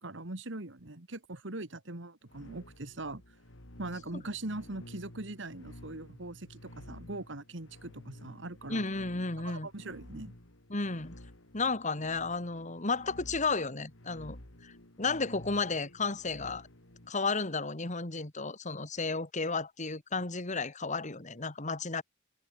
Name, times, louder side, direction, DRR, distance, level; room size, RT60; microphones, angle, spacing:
voice 1, 0.0-3.2 3.8-8.8 9.4-10.3, right 2 dB, 65° right, 2.3 m, -41 dB
sound 1, 2.3-17.1, left 1 dB, 80° left, 3.5 m, -52 dB
voice 2, 8.7-9.7 10.7-11.2 11.5-14.4 14.6-16.7 17.1-22.0, left 3 dB, 40° left, 2.3 m, -33 dB
head